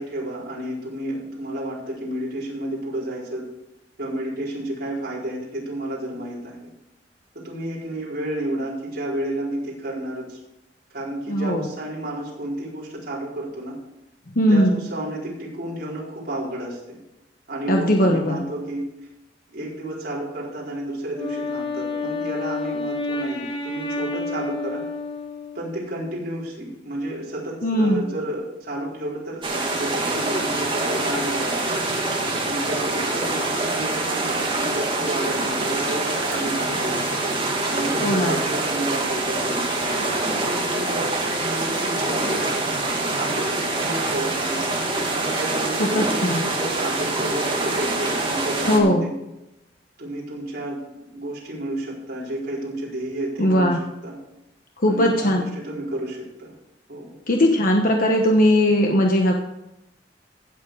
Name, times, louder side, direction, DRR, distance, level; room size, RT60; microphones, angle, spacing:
voice 1, 0.0-3.4 4.0-6.6 7.3-10.4 10.9-13.8 14.5-17.0 17.5-18.9 19.5-24.8 25.5-31.6 32.4-37.3 37.7-39.6 40.4-42.7 43.1-44.6 45.1-49.1 50.0-53.8 54.0-54.2 54.9-56.5 56.9-57.1, right 1 dB, 60° right, -5 dB, 4.5 m, -31 dB
voice 2, 11.3-11.6 14.3-14.8 17.7-18.5 27.6-28.1 38.0-38.4 45.9-46.4 48.7-49.1 53.4-53.8 54.8-55.5 57.3-59.4, equal, 50° left, 2 dB, 1.2 m, -19 dB
Wind instrument woodwind instrument, 21.1-25.9, left 3 dB, 35° left, 3.2 m, -29 dB
sound 1, 29.4-48.8, right 2 dB, 30° right, 2.2 m, -25 dB
15.5 x 7.5 x 4.7 m, 0.91 s
head